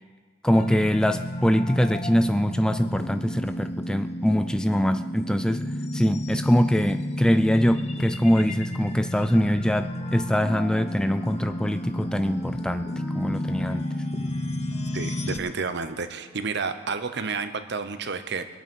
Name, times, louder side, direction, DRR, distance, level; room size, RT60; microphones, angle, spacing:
voice 1, 0.4-5.6 5.9-12.9 13.1-13.9, equal, 5° left, 10 dB, 0.3 m, -23 dB
sound 1, 0.5-15.4, left 1 dB, 35° left, 1.1 m, -32 dB
Wind instrument woodwind instrument, 9.8-17.1, equal, 25° right, 2.7 m, -48 dB
voice 2, 14.9-18.5, right 4 dB, 60° right, 10 dB, 0.9 m, -30 dB
23.0 x 8.5 x 5.4 m, 1.5 s
head